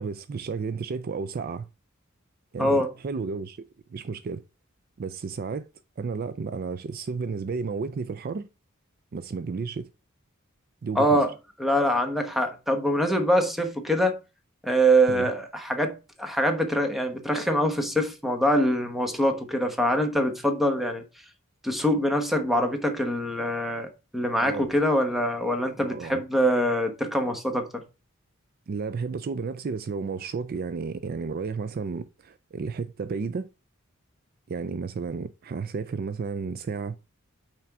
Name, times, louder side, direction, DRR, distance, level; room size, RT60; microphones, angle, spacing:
voice 1, 0.0-1.6 2.5-3.6 3.9-4.4 5.0-5.7 6.0-8.5 9.1-9.9 10.8-11.2 15.1-15.3 24.4-24.7 25.8-26.2 28.7-33.5 34.5-36.9, right 5 dB, 45° right, 0.4 m, -32 dB
voice 2, 2.6-2.9 10.9-11.3 11.6-14.2 14.6-21.0 21.6-27.8, equal, ahead, 1.2 m, -24 dB
5.9 x 4.5 x 5.9 m
head